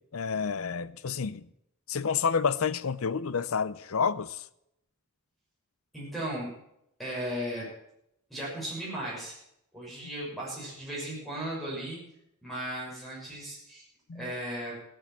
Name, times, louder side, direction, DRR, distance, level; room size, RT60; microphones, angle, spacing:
voice 1, 0.0-1.5 1.9-4.4 14.1-14.3, left 6 dB, 70° left, 0.6 m, -29 dB
voice 2, 5.9-6.5 7.0-7.7 8.3-9.4 9.7-12.0 12.4-13.8 14.1-14.8, right 1 dB, ahead, 6.3 m, -36 dB
16.0 x 8.7 x 7.4 m
head